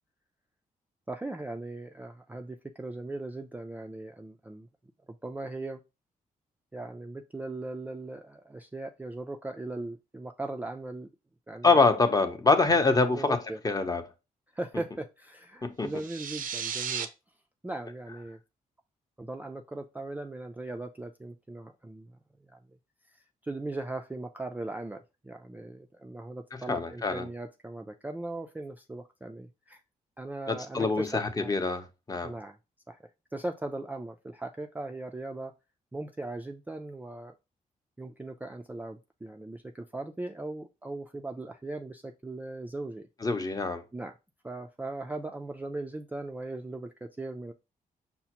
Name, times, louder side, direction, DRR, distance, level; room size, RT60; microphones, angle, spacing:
voice 1, 1.1-4.7 5.2-5.8 6.7-11.1 11.5-11.8 13.1-13.6 14.5-17.1 17.6-18.4 19.2-22.1 22.5-22.6 23.1-29.8 30.2-31.5 32.2-32.6 32.9-33.0 33.3-35.5 35.9-37.3 38.0-43.1 43.9-44.1 44.4-47.5, right 2 dB, 10° right, 0.3 m, -39 dB
voice 2, 11.6-13.4 13.6-14.1 15.6-15.9 26.5-27.3 30.5-32.3 43.2-43.8, left 3 dB, 25° left, 0.7 m, -25 dB
sound 1, 15.9-17.1, right 7 dB, 70° right, 0.5 m, -34 dB
5.5 x 2.1 x 2.9 m
cardioid pair, 75°, 15 cm